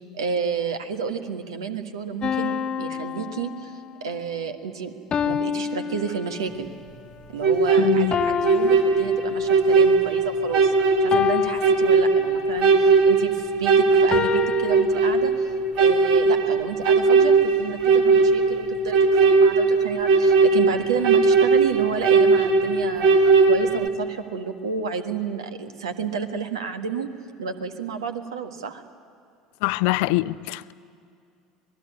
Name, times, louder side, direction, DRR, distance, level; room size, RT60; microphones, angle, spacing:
voice 1, 0.1-3.7 4.0-4.9 5.2-6.7 7.3-10.7 11.0-15.3 15.8-23.1 23.5-27.1 27.4-28.8, right 6 dB, 70° right, 1.6 m, -30 dB
sound 1, 2.2-4.0 5.1-6.7 8.1-9.8 11.1-12.6 14.1-14.9, left 7 dB, 35° left, 0.9 m, -28 dB
sound 2, 7.4-23.9, right 4 dB, 50° right, 1.8 m, -19 dB
voice 2, 7.8-8.2 29.6-30.7, left 20 dB, 60° left, 0.5 m, -24 dB
26.5 x 19.5 x 9.7 m
figure-of-eight pair, 65°, 3 cm